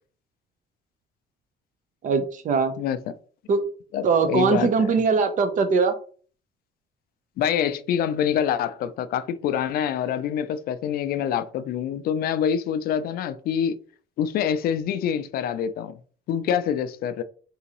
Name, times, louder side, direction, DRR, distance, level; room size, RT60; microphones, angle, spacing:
voice 1, 2.0-2.7 3.5-3.6 4.0-5.9, right 5 dB, 50° right, 0.7 m, -21 dB
voice 2, 3.9-4.9 7.4-13.8 14.2-16.0 16.3-17.2, left 8 dB, 65° left, 0.4 m, -26 dB
3.7 x 2.8 x 2.9 m
cardioid pair, 110°, 17 cm